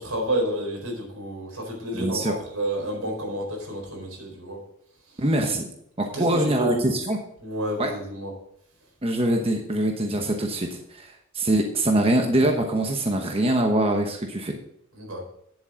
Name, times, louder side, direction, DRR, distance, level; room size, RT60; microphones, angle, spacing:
voice 1, 0.0-4.6 5.1-5.2 6.1-6.9 7.4-8.3 14.9-15.2, right 1 dB, 80° right, 1 dB, 4.4 m, -30 dB
voice 2, 1.9-2.4 5.2-5.7 6.0-7.2 7.8-7.9 9.0-14.5, right 1 dB, 25° right, 3 dB, 1.0 m, -23 dB
10.5 x 7.9 x 5.1 m, 0.72 s
head